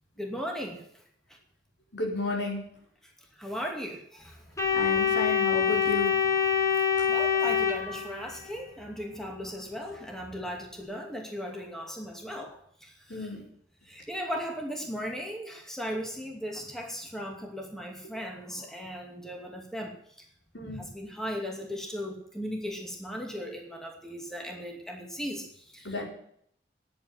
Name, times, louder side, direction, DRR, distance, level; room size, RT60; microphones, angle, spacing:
voice 1, 0.2-1.0 1.3-1.4 3.0-4.4 6.8-13.3 13.8-20.3 20.6-26.1, equal, 5° left, 1 dB, 2.4 m, -37 dB
voice 2, 1.9-2.6 4.7-6.1 13.1-13.4 20.5-20.8 25.8-26.1, left 2 dB, 80° left, 0 dB, 4.8 m, -32 dB
Organ, 4.6-8.5, left 7 dB, 20° left, 2.3 m, -25 dB
10.5 x 8.9 x 9.4 m, 0.65 s
head